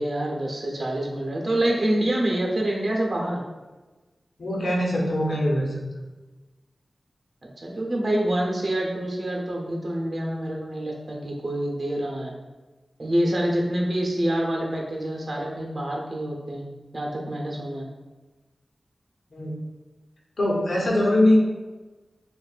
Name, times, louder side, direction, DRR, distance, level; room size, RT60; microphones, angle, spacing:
voice 1, 0.0-3.4 7.6-12.3 13.0-17.9, right 1 dB, 50° right, -1 dB, 1.0 m, -26 dB
voice 2, 4.4-5.8 19.3-19.6 20.4-21.4, left 1 dB, 80° left, -3 dB, 1.1 m, -22 dB
6.4 x 2.6 x 2.5 m, 1.2 s
wide cardioid pair, 75°, 0 cm